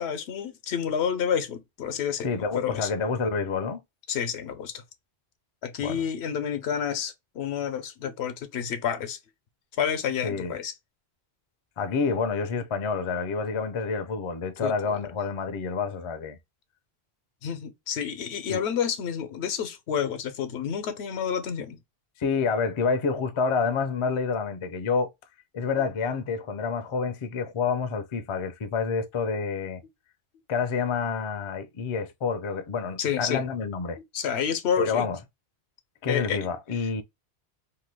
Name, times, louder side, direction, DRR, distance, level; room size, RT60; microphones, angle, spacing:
voice 1, 0.0-2.9 4.1-4.8 5.6-9.2 9.8-10.7 14.6-15.0 17.4-21.8 33.0-33.4 34.1-35.1 36.1-36.5, left 8 dB, 90° left, 0.9 m, -29 dB
voice 2, 2.2-3.8 5.8-6.0 10.2-10.5 11.8-16.4 18.5-18.6 22.2-25.1 25.5-29.8 30.5-34.0 34.8-35.2 36.0-37.0, left 5 dB, 50° left, 0.4 m, -28 dB
2.8 x 2.2 x 3.1 m
omnidirectional pair, 1.1 m